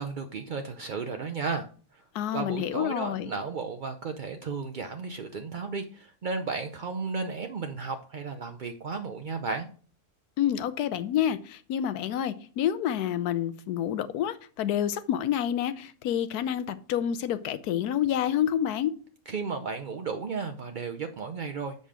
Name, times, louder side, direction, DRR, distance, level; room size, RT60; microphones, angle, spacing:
voice 1, 0.0-2.0 2.3-9.7 19.3-21.8, right 4 dB, 55° right, 0.5 m, -34 dB
voice 2, 2.1-3.3 10.4-18.9, left 10 dB, 90° left, 1.2 m, -28 dB
7.5 x 5.3 x 5.0 m
omnidirectional pair, 1.6 m